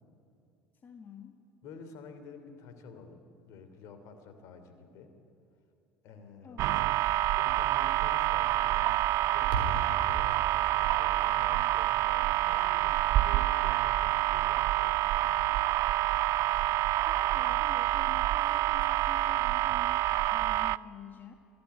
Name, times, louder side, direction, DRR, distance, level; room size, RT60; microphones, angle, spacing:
voice 1, 0.8-1.4 6.4-7.0 16.8-21.3, left 6 dB, 35° left, 5 dB, 1.8 m, -49 dB
voice 2, 1.6-5.1 6.0-6.6 7.4-9.0 9.3-15.3, left 4 dB, 60° left, 8 dB, 3.1 m, -49 dB
sound 1, 6.6-20.8, right 15 dB, 55° right, 0.5 m, -27 dB
sound 2, 9.5-13.8, right 3 dB, 85° right, 4.0 m, -40 dB
25.0 x 16.0 x 9.5 m, 2.8 s
hypercardioid pair, 70°, 6 cm